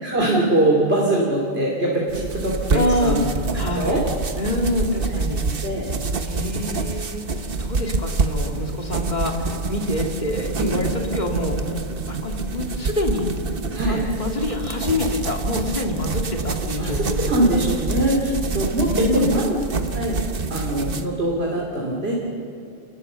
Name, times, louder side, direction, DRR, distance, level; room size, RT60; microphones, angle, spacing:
voice 1, 0.0-3.3 3.7-4.0 5.4-5.8 6.3-6.5 10.6-10.8 13.7-14.0 16.8-19.6 19.9-20.2 20.5-22.1, right 1 dB, 80° right, -3 dB, 3.1 m, -22 dB
sound 1, 2.1-21.1, right 4 dB, 60° right, 1.4 m, -27 dB
voice 2, 2.7-3.2 3.5-4.0 4.4-5.5 6.2-11.6 12.1-13.3 13.8-17.3 18.9-19.4, left 1 dB, 45° left, 1 dB, 2.6 m, -26 dB
28.0 x 20.5 x 6.9 m, 2.8 s
omnidirectional pair, 1.0 m